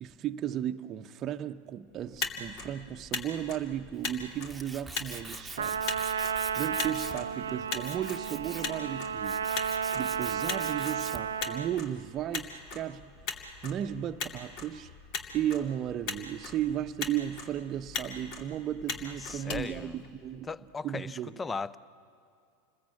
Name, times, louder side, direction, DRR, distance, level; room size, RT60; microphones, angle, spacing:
voice 1, 0.0-6.3 6.6-9.4 9.9-14.9 15.3-20.5 20.8-21.4, right 11 dB, 40° right, 0.8 m, -35 dB
Motor vehicle (road), 2.0-20.5, left 5 dB, 55° left, 2.6 m, -40 dB
Tools, 3.9-11.4, right 3 dB, 10° right, 1.3 m, -45 dB
Trumpet, 5.6-11.8, right 7 dB, 85° right, 0.5 m, -33 dB
voice 2, 19.2-20.0 20.5-21.8, left 4 dB, 20° left, 0.7 m, -37 dB
28.0 x 20.5 x 8.5 m
hypercardioid pair, 90°, 0 cm